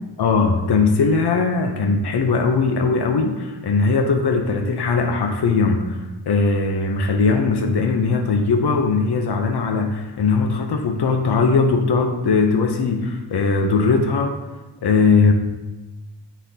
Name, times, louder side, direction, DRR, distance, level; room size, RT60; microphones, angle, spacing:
voice 1, 0.2-6.0 6.3-14.3 14.8-15.3, left 4 dB, 70° left, 4 dB, 0.7 m, -19 dB
9.7 x 4.2 x 2.8 m, 1.1 s
wide cardioid pair, 85°, 42 cm